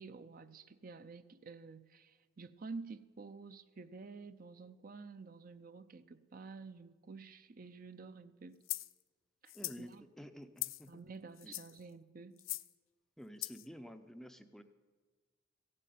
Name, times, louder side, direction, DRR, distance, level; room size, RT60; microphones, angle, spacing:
voice 1, 0.0-8.6 9.4-10.0 10.9-12.4, right 4 dB, 45° right, 0.5 m, -50 dB
sound 1, 8.7-8.9 9.5-9.8 10.6-10.9 11.4-11.8 12.4-12.7 13.4-13.7, left 18 dB, 70° left, 0.4 m, -41 dB
voice 2, 9.5-11.0 11.4-11.6 13.2-14.6, equal, ahead, 0.5 m, -51 dB
15.5 x 7.7 x 9.3 m
head